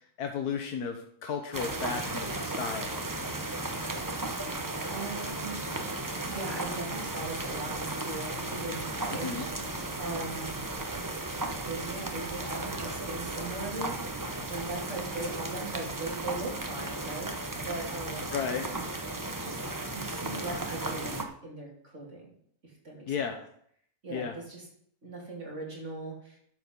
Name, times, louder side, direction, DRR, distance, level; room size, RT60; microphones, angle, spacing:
voice 1, 0.2-2.9 9.1-9.4 18.3-18.8 23.1-23.4 24.1-24.3, left 6 dB, 85° left, 4 dB, 1.5 m, -34 dB
sound 1, 1.5-21.2, right 2 dB, 15° right, 0.7 m, -35 dB
voice 2, 4.9-5.8 6.3-9.5 10.0-10.6 11.6-14.0 14.5-17.4 17.6-18.4 19.3-22.3 22.6-23.1 24.0-24.7 25.0-26.4, right 2 dB, 50° right, -2 dB, 3.3 m, -39 dB
12.0 x 7.1 x 5.3 m, 0.66 s
omnidirectional pair, 1.6 m